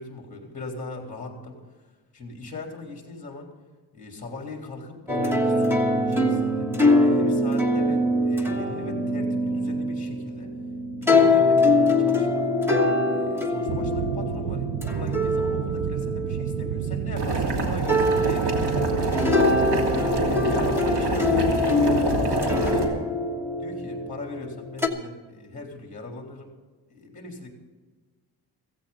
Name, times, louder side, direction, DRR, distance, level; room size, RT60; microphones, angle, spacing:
voice 1, 0.0-3.5 3.9-6.7 7.0-10.5 11.0-12.5 13.0-19.3 20.4-23.0 23.6-26.5 26.9-27.5, left 2 dB, 20° left, 1 dB, 3.4 m, -39 dB
sound 1, 5.1-17.4 17.9-24.9, left 2 dB, 5° right, 1.3 m, -24 dB
sound 2, 13.7-20.0, right 10 dB, 70° right, 0.7 m, -31 dB
Boiling, 17.2-22.8, right 1 dB, 85° right, 3.0 m, -26 dB
16.0 x 16.0 x 3.9 m, 1.3 s
wide cardioid pair, 175°, 39 cm